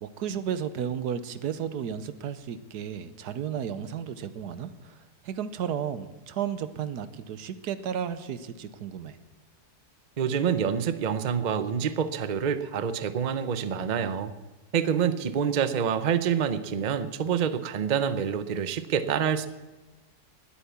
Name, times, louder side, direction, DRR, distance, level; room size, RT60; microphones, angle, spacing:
voice 1, 0.0-9.2, right 8 dB, 85° right, 13 dB, 1.4 m, -33 dB
voice 2, 10.2-14.3 14.7-19.5, right 7 dB, 45° right, 12 dB, 0.6 m, -27 dB
19.5 x 8.5 x 7.0 m, 1.2 s
omnidirectional pair, 1.7 m